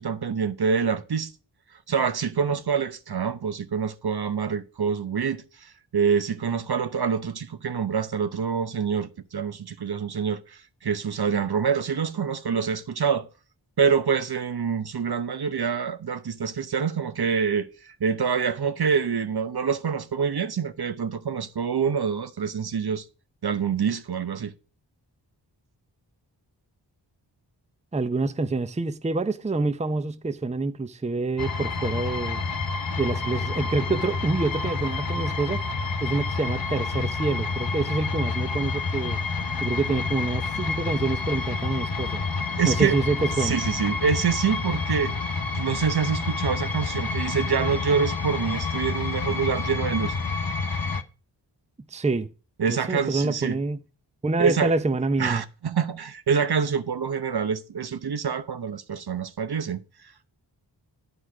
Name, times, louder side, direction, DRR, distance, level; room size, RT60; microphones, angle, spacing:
voice 1, 0.0-1.3 1.9-13.3 13.8-23.0 23.4-24.5 42.6-42.9 43.4-45.1 45.5-50.2 52.6-53.6 54.4-54.7 55.2-59.8, right 6 dB, 60° right, 0.9 m, -26 dB
voice 2, 27.9-32.4 33.0-35.6 36.0-39.2 39.6-42.2 42.6-43.6 51.9-52.3 52.7-53.8 54.2-55.4, right 3 dB, 15° right, 0.6 m, -27 dB
sound 1, 31.4-51.0, left 4 dB, 50° left, 0.9 m, -29 dB
9.9 x 5.0 x 6.0 m
cardioid pair, 45°, 44 cm